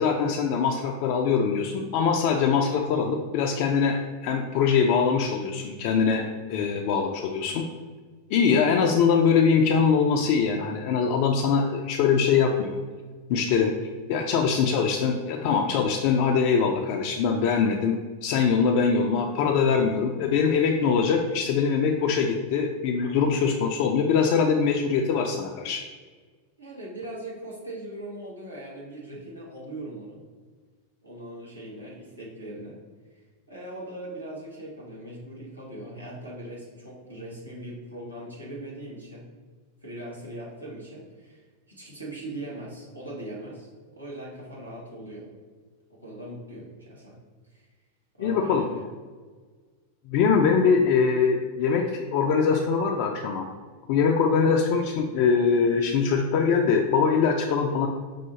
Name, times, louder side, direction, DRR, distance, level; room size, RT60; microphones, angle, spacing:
voice 1, 0.0-7.6 8.3-12.8 13.3-13.7 14.1-25.8 48.2-48.6 50.1-53.5 53.9-57.9, left 6 dB, 45° left, 2 dB, 0.3 m, -23 dB
voice 2, 26.6-30.2 31.0-32.7 33.1-33.2 33.5-39.2 39.8-45.3 45.9-47.1 47.5-47.7 48.2-48.8, right 1 dB, 85° right, -5 dB, 1.2 m, -40 dB
5.5 x 2.4 x 2.8 m, 1.5 s
figure-of-eight pair, 90°, 0 cm